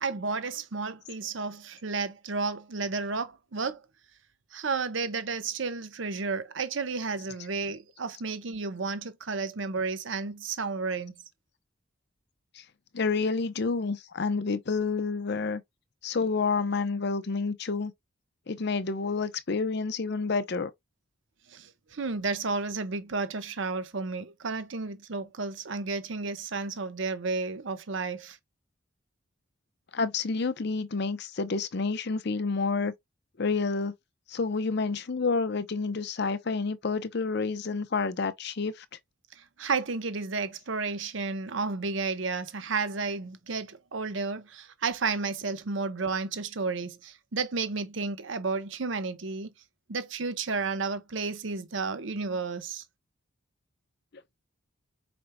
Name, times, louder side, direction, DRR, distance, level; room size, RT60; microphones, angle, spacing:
voice 1, 0.0-3.8 4.5-11.1 22.0-28.4 39.6-49.5 49.9-52.8, right 4 dB, 60° right, 0.8 m, -32 dB
voice 2, 12.9-15.6 16.0-17.9 18.5-20.7 29.9-32.9 33.4-33.9 34.3-38.8, left 4 dB, 50° left, 0.6 m, -29 dB
5.1 x 4.4 x 2.2 m
head